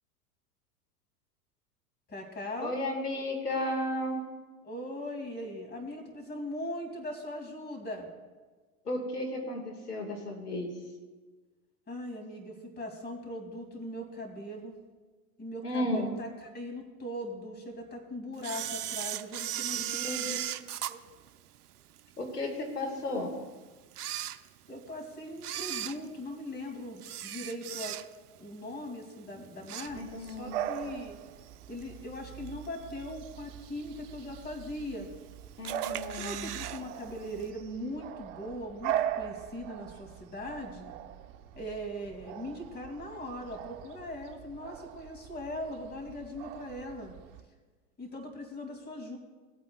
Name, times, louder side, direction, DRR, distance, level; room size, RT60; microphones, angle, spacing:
voice 1, 2.1-2.7 4.6-8.1 11.9-14.7 15.4-20.4 20.9-21.0 24.7-28.0 28.4-31.2 31.7-35.1 36.1-40.9 41.6-47.1 48.0-49.2, left 1 dB, 20° left, 3 dB, 2.5 m, -40 dB
voice 2, 2.6-4.2 8.9-10.7 15.6-16.1 19.8-20.4 22.2-23.3 29.9-30.6 35.6-36.5, left 1 dB, 90° left, 2 dB, 1.9 m, -34 dB
Camera, 18.4-22.0 22.5-22.6 23.3-23.4 23.8-24.9 25.3-28.4 28.7-29.0 29.4-30.4 30.7-30.8 31.8-31.9 32.5-32.9 33.3-33.4 33.6-33.7 33.8-33.9 34.7-35.2 35.6-36.8 37.1-37.2 37.4-37.5, right 12 dB, 75° right, 0.7 m, -37 dB
Bark / Bird vocalization bird call bird song, 29.9-47.4, right 11 dB, 55° right, 0.9 m, -41 dB
18.5 x 8.5 x 2.3 m, 1.3 s
hypercardioid pair, 90°, 45 cm